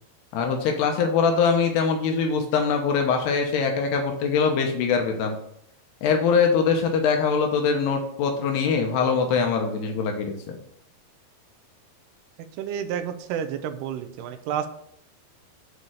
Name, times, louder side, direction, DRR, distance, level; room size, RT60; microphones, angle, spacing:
voice 1, 0.3-5.4 6.0-10.6, left 5 dB, 80° left, 3 dB, 3.0 m, -23 dB
voice 2, 12.6-14.7, right 9 dB, 85° right, 7 dB, 2.7 m, -30 dB
8.3 x 4.2 x 6.5 m, 0.70 s
omnidirectional pair, 4.6 m